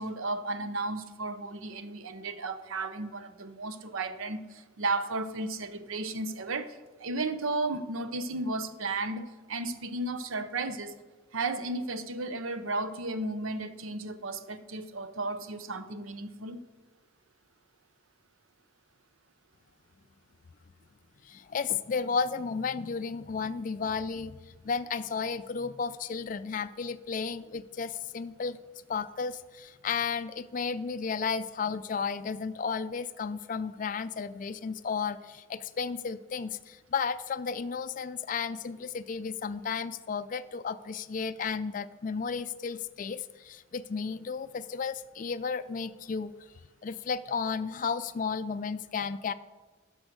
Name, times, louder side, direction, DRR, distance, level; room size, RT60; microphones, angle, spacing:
voice 1, 0.0-11.0 11.3-16.6, right 2 dB, 80° right, 11 dB, 0.7 m, -34 dB
voice 2, 21.2-28.6 28.9-46.3 46.8-49.3, left 5 dB, 40° left, 12 dB, 0.3 m, -33 dB
10.5 x 6.3 x 6.5 m, 1.3 s
head